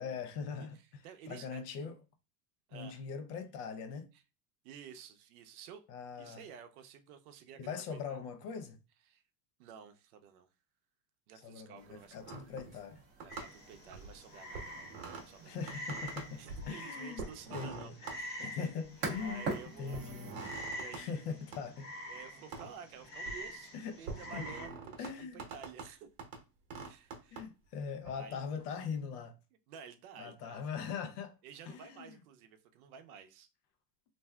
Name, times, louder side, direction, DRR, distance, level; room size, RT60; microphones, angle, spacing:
voice 1, 0.0-2.0 2.7-4.1 5.9-6.4 7.6-8.8 11.4-13.0 15.5-18.0 18.4-19.5 19.8-20.4 20.9-21.9 23.7-24.0 24.3-24.5 25.0-25.4 27.3-29.3 30.2-31.4 31.7-32.2, left 6 dB, 65° left, 0.7 m, -41 dB
voice 2, 1.0-1.6 2.7-3.0 4.6-5.8 6.2-8.3 9.1-9.2 9.6-10.5 11.3-12.5 13.2-14.9 15.2-15.6 16.4-18.6 19.2-20.2 20.7-21.3 22.1-23.7 24.0-26.1 26.9-27.4 28.1-28.4 28.8-28.9 29.7-30.6 31.4-33.5, right 7 dB, 60° right, 0.6 m, -52 dB
sound 1, 11.8-20.5, right 4 dB, 20° right, 0.6 m, -46 dB
sound 2, 12.2-12.9 13.2-14.2 14.5-15.3 15.6-16.7 17.2-18.2 18.8-19.4 19.9-21.0 21.5-21.6 22.5-22.7 23.0-23.5 24.0-25.1 25.4-25.9 26.2-26.4 26.7-27.5 28.0-28.1, right 4 dB, 35° right, 0.9 m, -45 dB
Frog, 13.3-24.7, equal, 20° left, 0.6 m, -47 dB
3.3 x 2.6 x 2.2 m
supercardioid pair, 175°, 50 cm